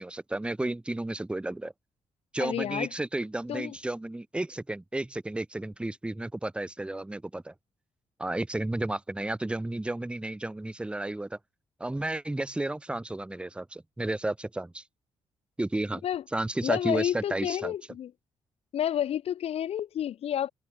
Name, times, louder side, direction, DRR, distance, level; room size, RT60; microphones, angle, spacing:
voice 1, 0.0-1.7 2.3-7.5 8.2-11.4 11.8-14.8 15.6-16.0 16.3-17.7, right 2 dB, 10° right, 0.8 m, -32 dB
voice 2, 2.4-2.9 3.5-3.7 16.0-16.2 16.6-18.1 18.7-20.5, left 10 dB, 65° left, 0.7 m, -30 dB
cardioid pair, 95°, 11 cm